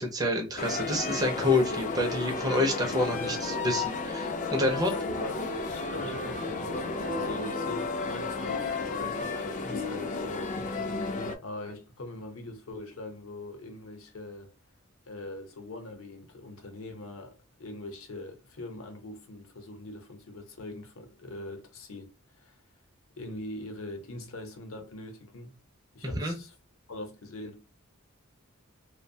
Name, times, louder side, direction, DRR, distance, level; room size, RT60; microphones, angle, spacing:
voice 1, 0.0-4.9 26.0-26.4, left 1 dB, 15° right, 0.5 m, -28 dB
sound 1, 0.6-11.4, left 3 dB, 35° left, 0.4 m, -33 dB
voice 2, 4.6-5.4 5.7-14.5 15.1-22.6 23.2-25.6 25.9-26.6 26.9-27.6, left 2 dB, 70° left, 0.7 m, -42 dB
sound 2, 6.9-9.0, right 5 dB, 80° right, 0.3 m, -43 dB
2.6 x 2.1 x 2.6 m
head